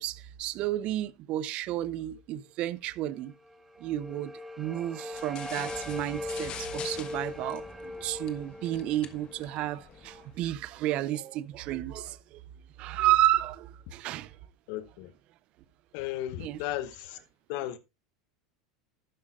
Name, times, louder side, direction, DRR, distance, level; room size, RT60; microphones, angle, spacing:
voice 1, 0.0-3.3 3.8-12.4 12.8-14.4 16.4-16.6, right 14 dB, 50° right, 0.6 m, -31 dB
sound 1, 3.4-10.5, left 1 dB, 5° right, 0.9 m, -40 dB
sound 2, 5.1-10.4, left 9 dB, 40° left, 1.2 m, -46 dB
voice 2, 14.7-15.1 15.9-17.2 17.5-17.8, left 13 dB, 60° left, 1.0 m, -35 dB
12.0 x 9.7 x 2.5 m
hypercardioid pair, 80°, 2 cm